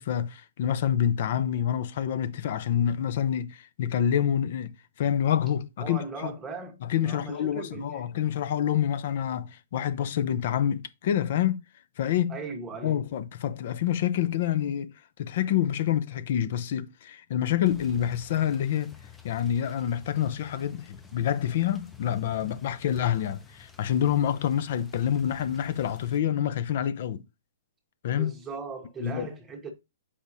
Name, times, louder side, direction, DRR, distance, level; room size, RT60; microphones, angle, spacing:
voice 1, 0.0-6.3 6.8-11.6 12.0-12.4 12.8-14.9 15.2-18.9 19.2-27.2 28.0-28.3 29.0-29.3, left 10 dB, 50° left, 0.7 m, -27 dB
voice 2, 5.8-6.8 7.0-8.1 12.3-13.0 28.1-29.7, right 4 dB, 10° right, 1.2 m, -38 dB
sound 1, 17.6-26.2, left 6 dB, 10° left, 0.7 m, -50 dB
7.2 x 5.0 x 2.7 m
hypercardioid pair, 150°, 0 cm